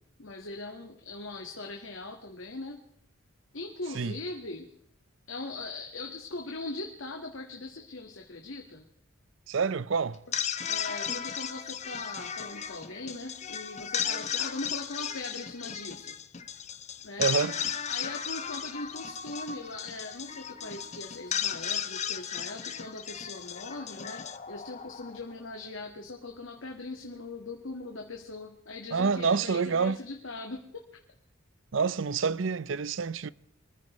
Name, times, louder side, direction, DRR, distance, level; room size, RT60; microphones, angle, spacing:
voice 1, 0.2-2.8 3.5-4.7 5.3-8.8 10.6-16.3 17.0-17.3 17.9-30.8, left 2 dB, 70° left, 1.7 m, -40 dB
voice 2, 9.5-10.2 17.2-17.6 28.9-30.0 31.7-33.3, right 5 dB, 65° right, 0.6 m, -27 dB
sound 1, 10.1-25.4, left 8 dB, 35° left, 0.8 m, -35 dB
24.5 x 14.5 x 3.2 m
head